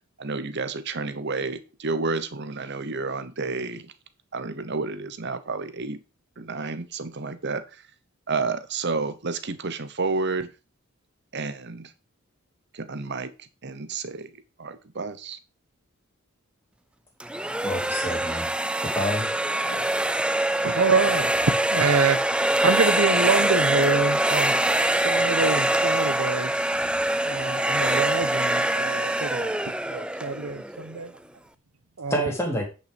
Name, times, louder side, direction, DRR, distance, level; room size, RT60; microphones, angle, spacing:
voice 1, 0.2-3.9 4.3-6.0 6.4-7.6 8.3-10.5 11.3-11.9 12.7-14.3 14.6-15.4, right 4 dB, 50° right, 1.0 m, -30 dB
sound 1, 17.2-31.0, right 1 dB, 5° right, 0.4 m, -24 dB
voice 2, 17.6-18.5 18.8-19.3 32.1-32.6, equal, 10° left, 2.6 m, -28 dB
voice 3, 20.6-21.3 21.7-22.2 22.6-24.5 25.0-26.5 27.2-29.5 29.9-31.1 32.0-32.3, right 4 dB, 75° right, 1.0 m, -26 dB
9.2 x 5.7 x 5.1 m
head